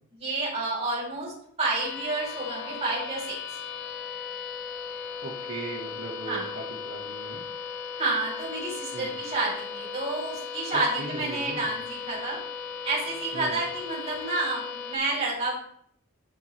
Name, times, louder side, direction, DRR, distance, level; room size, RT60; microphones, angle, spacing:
voice 1, 0.1-1.3 1.6-3.4 6.3-6.5 8.0-12.4 12.8-15.5, right 2 dB, 30° right, -6 dB, 3.8 m, -29 dB
sound 1, 1.8-15.0, left 6 dB, 60° left, 1.0 m, -37 dB
voice 2, 5.2-7.4 8.9-9.1 10.7-11.7 13.3-13.6, right 3 dB, 80° right, -3 dB, 1.8 m, -38 dB
13.0 x 4.4 x 3.3 m, 0.65 s
head